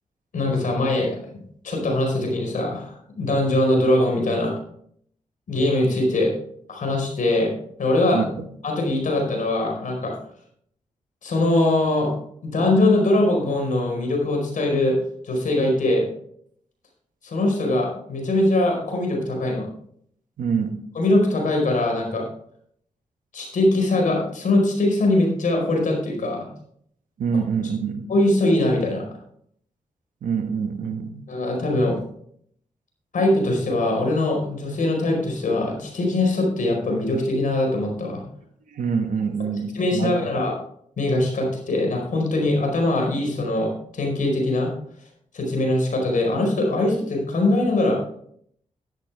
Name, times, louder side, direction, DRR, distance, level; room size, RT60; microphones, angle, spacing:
voice 1, 0.3-4.5 5.5-6.3 6.7-8.2 8.6-10.1 11.2-12.2 12.4-15.0 15.2-16.1 17.2-19.7 20.9-22.3 23.3-26.5 28.1-29.0 31.3-32.0 33.1-38.2 39.7-40.5 41.0-44.7 45.3-48.0, left 1 dB, 70° left, 4.8 m, -22 dB
voice 2, 8.1-8.4 20.4-20.8 27.2-28.1 30.2-31.3 38.7-40.3, right 6 dB, 75° right, 1.5 m, -26 dB
12.5 x 10.5 x 3.6 m
supercardioid pair, 45°, 14 cm